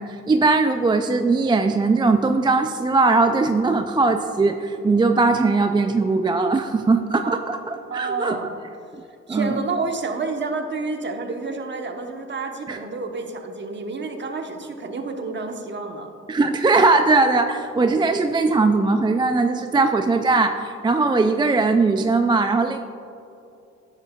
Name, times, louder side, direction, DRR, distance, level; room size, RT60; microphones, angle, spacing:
voice 1, 0.0-8.4 9.3-9.5 12.7-12.8 16.3-22.8, right 3 dB, 15° right, 7 dB, 0.3 m, -20 dB
voice 2, 7.9-8.6 9.3-16.1, right 3 dB, 40° right, 4 dB, 1.1 m, -29 dB
10.5 x 8.0 x 2.3 m, 2.8 s
cardioid pair, 70°, 29 cm